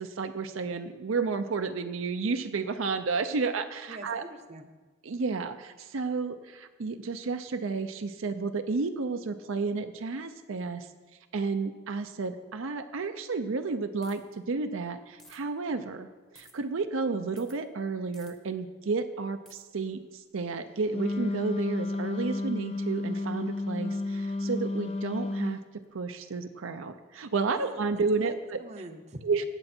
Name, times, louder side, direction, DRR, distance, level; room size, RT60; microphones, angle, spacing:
voice 1, 0.0-4.2 5.0-10.9 11.3-16.1 16.3-25.6 25.9-28.6 29.2-29.4, right 4 dB, 70° right, 8 dB, 0.5 m, -31 dB
voice 2, 3.9-4.7 27.6-29.2, right 1 dB, 30° right, 8 dB, 0.7 m, -45 dB
sound 1, 14.0-14.3 15.2-15.4 16.3-16.5 17.4-17.6 18.1-18.3 19.5-19.6, equal, ahead, 0.8 m, -54 dB
Wind instrument woodwind instrument, 20.9-25.6, left 2 dB, 30° left, 0.4 m, -31 dB
17.5 x 7.7 x 4.4 m, 1.3 s
head